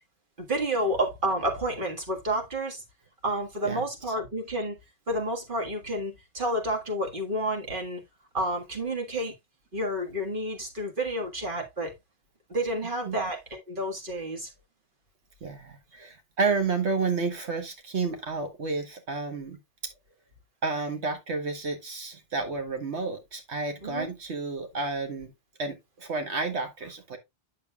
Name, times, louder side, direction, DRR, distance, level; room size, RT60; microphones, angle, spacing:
voice 1, 0.4-2.8 3.2-4.8 5.1-8.0 8.3-9.3 9.7-11.9 12.5-14.5 23.8-24.1, right 1 dB, 50° right, 1.9 m, -30 dB
voice 2, 15.4-19.6 20.6-25.3 25.6-27.2, right 4 dB, 80° right, 1.5 m, -31 dB
8.9 x 6.7 x 2.3 m
omnidirectional pair, 1.1 m